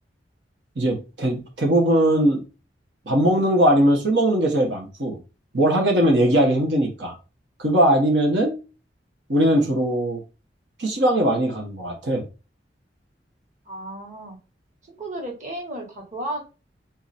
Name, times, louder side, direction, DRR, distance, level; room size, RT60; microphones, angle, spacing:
voice 1, 0.8-2.4 3.1-5.2 5.5-7.1 7.6-8.6 9.3-10.2 10.8-12.3, right 1 dB, 85° right, 1.3 m, -20 dB
voice 2, 13.7-14.4 15.0-16.4, right 1 dB, 45° right, 1.6 m, -33 dB
3.9 x 2.9 x 4.2 m
head